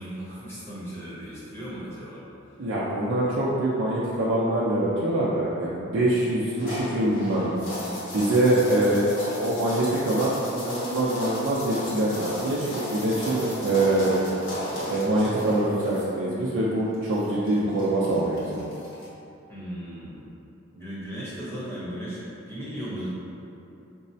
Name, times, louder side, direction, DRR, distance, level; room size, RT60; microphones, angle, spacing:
voice 1, 0.0-2.2 19.5-20.2 20.7-22.2 22.5-23.1, equal, 15° left, -9 dB, 0.8 m, -36 dB
voice 2, 2.6-7.5 8.1-9.1 9.4-14.2 14.9-18.6, right 1 dB, 65° right, -8 dB, 0.5 m, -24 dB
sound 1, 6.6-16.1 16.9-19.1, left 1 dB, 70° left, 0.9 m, -35 dB
5.2 x 2.0 x 2.7 m, 2.8 s
head